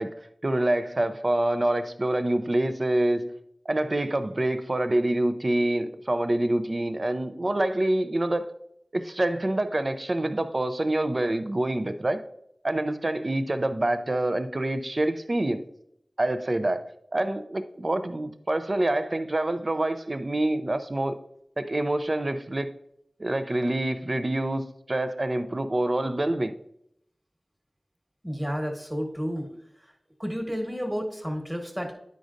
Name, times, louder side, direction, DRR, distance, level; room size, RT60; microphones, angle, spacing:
voice 1, 0.0-3.3 3.7-8.5 8.9-12.2 12.6-15.6 16.2-21.2 21.6-22.7 23.2-26.5, right 1 dB, 45° right, 0.5 m, -26 dB
voice 2, 28.2-29.9 30.2-31.9, equal, 10° right, 1.3 m, -31 dB
9.3 x 5.2 x 2.5 m
wide cardioid pair, 55°, 0 cm